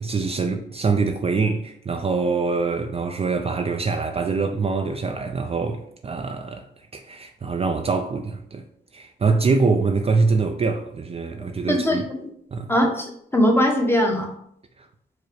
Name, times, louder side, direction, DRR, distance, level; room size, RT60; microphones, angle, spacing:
voice 1, 0.0-8.6 8.9-12.0 12.5-12.7 14.8-14.9, right 4 dB, 30° right, 0.4 m, -24 dB
voice 2, 11.7-12.2 12.7-14.3, left 1 dB, 10° left, 1.0 m, -21 dB
4.8 x 2.1 x 4.6 m
cardioid pair, 65°, 19 cm